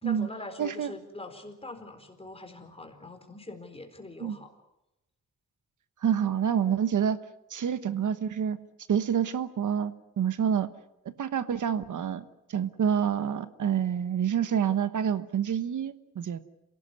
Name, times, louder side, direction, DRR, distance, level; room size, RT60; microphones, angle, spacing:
voice 1, 0.0-4.5, left 2 dB, 20° left, 5 dB, 4.0 m, -43 dB
voice 2, 0.6-0.9 4.2-4.4 6.0-7.2 7.5-8.6 8.9-10.7 11.2-12.2 12.5-16.4, right 8 dB, 75° right, 12 dB, 1.2 m, -27 dB
27.0 x 17.5 x 9.5 m, 0.91 s
wide cardioid pair, 130°, 31 cm